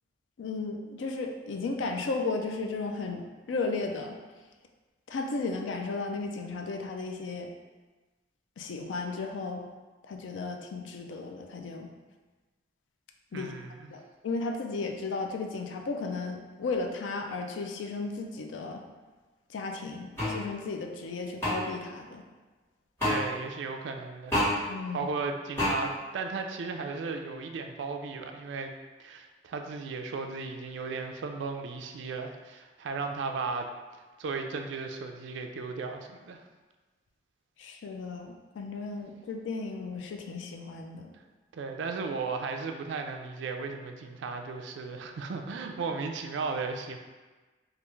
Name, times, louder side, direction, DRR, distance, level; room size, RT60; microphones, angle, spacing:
voice 1, 0.4-4.2 5.1-7.5 8.6-9.6 10.1-11.9 13.3-13.5 13.9-18.8 19.5-22.2 24.7-25.1 37.6-41.1, left 3 dB, 90° left, 3 dB, 0.4 m, -34 dB
voice 2, 13.3-13.9 23.0-24.4 24.9-28.7 29.0-33.7 34.2-36.4 41.5-47.0, right 4 dB, 80° right, 5 dB, 0.3 m, -35 dB
sound 1, 20.2-20.3 21.4-21.5 23.0-23.2 24.3-24.5 25.6-25.7, left 1 dB, 15° left, 1.2 m, -26 dB
3.4 x 2.4 x 3.0 m, 1.3 s
head